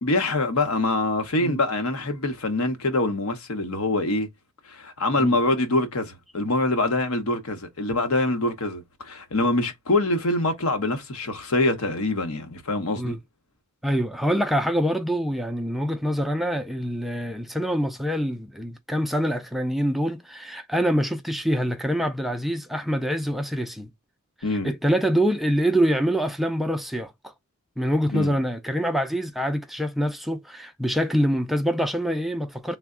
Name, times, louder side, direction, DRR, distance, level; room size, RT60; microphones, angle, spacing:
voice 1, 0.0-4.3 4.7-13.2 24.4-24.7 28.1-28.4, left 2 dB, 70° left, 0.9 m, -25 dB
voice 2, 13.8-23.9 24.5-27.3 27.8-32.8, equal, ahead, 0.3 m, -25 dB
3.3 x 2.1 x 3.6 m
head